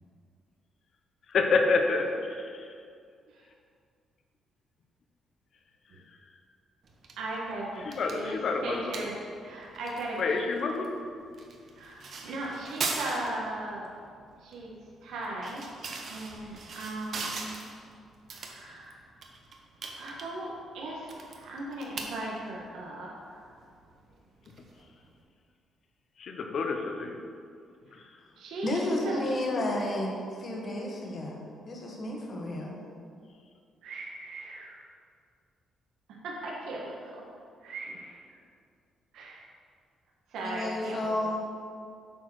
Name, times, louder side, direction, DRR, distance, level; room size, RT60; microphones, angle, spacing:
voice 1, 1.3-2.1 7.9-8.8 10.2-10.9 26.2-27.2, left 4 dB, 50° left, 3 dB, 0.8 m, -27 dB
sound 1, 6.8-25.2, right 4 dB, 45° right, 1.0 m, -42 dB
voice 2, 7.2-10.5 11.8-13.9 14.4-14.7 15.0-15.6 16.1-17.5 18.4-19.0 20.0-23.6 28.4-29.2 33.8-34.8 36.2-37.0 37.6-38.2 39.1-39.4 40.3-41.1, right 2 dB, 85° right, -3 dB, 1.3 m, -37 dB
voice 3, 28.6-32.7 40.4-41.4, left 1 dB, 35° left, -1 dB, 1.4 m, -32 dB
8.2 x 4.7 x 6.2 m, 2.3 s
cardioid pair, 155°, 0 cm